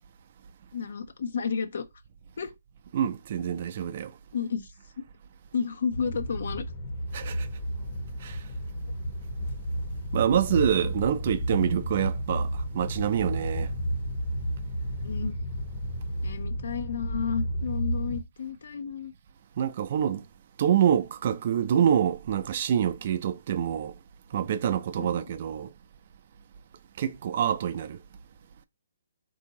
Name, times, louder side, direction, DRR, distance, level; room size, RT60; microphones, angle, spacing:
voice 1, 0.7-1.8 2.4-2.5 4.3-4.7 5.0-5.1 5.5-6.7 15.0-15.3 16.2-19.1 25.0-25.3, left 6 dB, 65° left, 0.5 m, -32 dB
voice 2, 2.9-4.1 7.1-7.5 8.2-8.4 10.1-13.7 19.6-20.2 20.6-23.9 24.3-25.7 27.0-28.0, right 9 dB, 50° right, 0.4 m, -26 dB
sound 1, 5.9-18.2, equal, 45° left, 0.9 m, -32 dB
3.6 x 2.7 x 2.8 m
hypercardioid pair, 145°, 0 cm